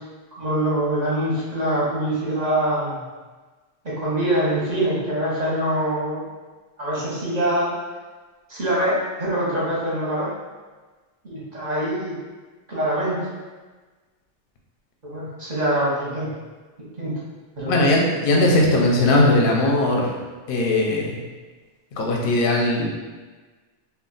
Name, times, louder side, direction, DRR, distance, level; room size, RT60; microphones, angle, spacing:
voice 1, 0.4-3.1 3.8-6.2 6.8-7.7 8.5-10.3 11.2-12.2 12.7-13.2 15.0-16.3 17.0-17.1 17.6-18.0 18.4-18.6, right 1 dB, 40° right, -8 dB, 0.7 m, -24 dB
voice 2, 17.7-20.1 20.5-21.2 22.0-22.9, left 1 dB, 60° left, -1 dB, 0.6 m, -19 dB
2.3 x 2.2 x 3.7 m, 1.3 s
omnidirectional pair, 1.2 m